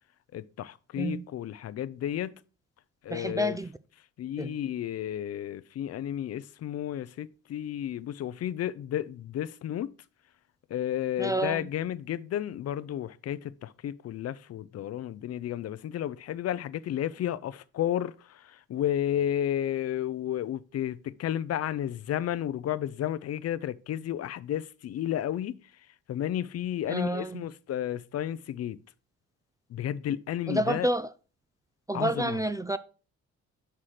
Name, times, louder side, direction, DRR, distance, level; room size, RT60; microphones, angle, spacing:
voice 1, 0.3-2.4 3.0-3.6 4.2-9.9 10.7-25.6 26.1-28.8 29.7-30.9 31.9-32.4, left 11 dB, 55° left, 0.5 m, -32 dB
voice 2, 3.1-3.7 4.4-4.5 11.2-11.6 26.9-27.4 30.5-31.1 31.9-32.8, right 1 dB, 10° right, 0.3 m, -29 dB
6.2 x 5.8 x 4.9 m
cardioid pair, 90°, 30 cm